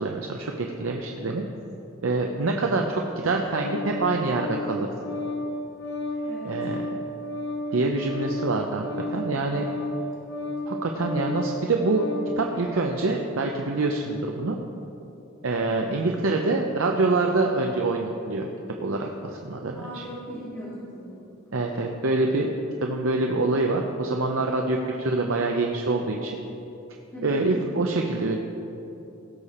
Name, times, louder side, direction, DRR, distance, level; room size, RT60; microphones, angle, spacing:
voice 1, 0.0-1.4 2.0-4.9 6.4-6.8 7.7-8.8 9.1-9.6 10.7-12.1 12.4-14.6 15.4-18.5 18.8-20.0 21.5-22.5 22.8-26.3 27.2-28.4, right 3 dB, 75° right, 1 dB, 0.7 m, -25 dB
Organ, 2.9-12.3, left 1 dB, 60° left, 2.4 m, -33 dB
voice 2, 6.2-6.6 19.7-21.2 27.1-27.4, equal, 10° left, -10 dB, 2.3 m, -39 dB
17.0 x 6.6 x 4.3 m, 2.9 s
head